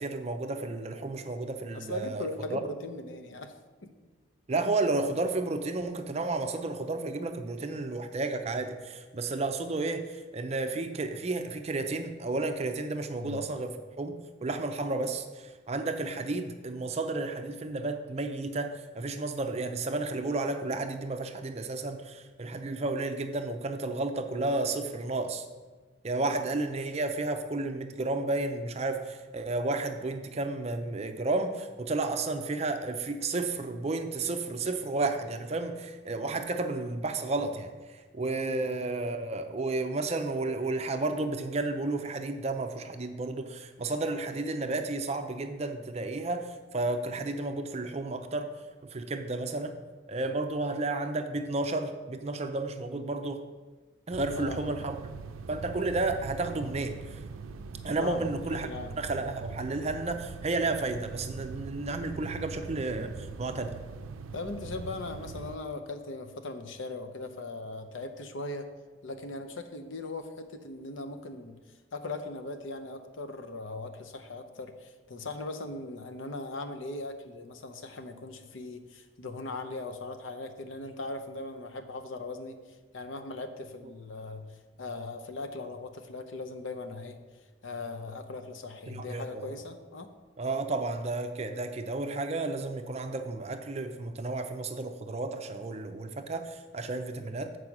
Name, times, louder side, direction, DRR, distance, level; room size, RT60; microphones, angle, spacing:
voice 1, 0.0-2.6 4.5-25.5 26.0-48.5 48.8-49.8 50.1-53.4 54.1-55.0 55.5-57.2 57.8-58.7 59.0-63.7 88.9-89.5 90.4-97.6, right 2 dB, 30° right, 7 dB, 0.5 m, -32 dB
voice 2, 1.7-3.5 3.8-3.9 13.2-13.5 26.2-26.4 38.4-38.8 54.3-54.8 58.0-59.0 64.3-68.7 69.0-71.6 71.9-82.6 82.9-87.2 87.6-90.1, left 2 dB, 70° left, 7 dB, 0.7 m, -39 dB
sound 1, 54.1-65.6, right 4 dB, 90° right, 0.4 m, -42 dB
8.0 x 4.8 x 5.9 m, 1.3 s
head